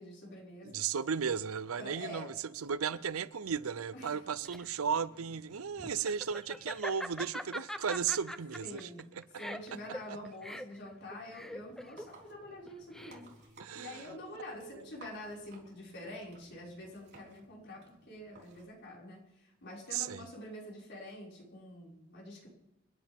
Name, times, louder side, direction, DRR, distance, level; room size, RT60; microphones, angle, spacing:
voice 1, 0.0-0.9 1.8-2.3 3.9-4.2 8.6-9.1 9.4-22.5, left 1 dB, 55° left, 5.8 m, -47 dB
voice 2, 0.6-9.2 13.6-14.1 14.7-14.8 19.9-20.3, right 7 dB, 85° right, 0.6 m, -35 dB
Laughter, 4.1-13.5, equal, ahead, 0.5 m, -43 dB
sound 1, 11.5-18.6, right 3 dB, 50° right, 3.7 m, -59 dB
28.5 x 10.5 x 3.6 m
head